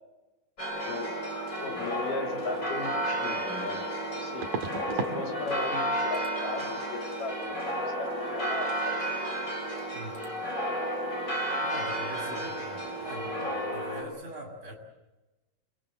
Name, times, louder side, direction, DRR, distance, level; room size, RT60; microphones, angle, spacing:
sound 1, 0.6-14.0, right 1 dB, 20° left, 6.0 m, -32 dB
voice 1, 0.9-1.2 1.6-3.8 4.2-4.5 4.9-9.1 12.3-12.4, left 3 dB, 75° left, 1 dB, 4.9 m, -37 dB
sound 2, 2.9-3.0 4.4-5.2 5.5-5.9 6.1-6.3 9.3-9.4 9.6-9.9 10.1-10.3, right 5 dB, 75° right, 3.4 m, -36 dB
voice 2, 11.6-12.6 13.0-14.7, right 1 dB, 20° right, 0 dB, 6.7 m, -43 dB
28.5 x 22.0 x 7.6 m, 1.1 s
omnidirectional pair, 3.8 m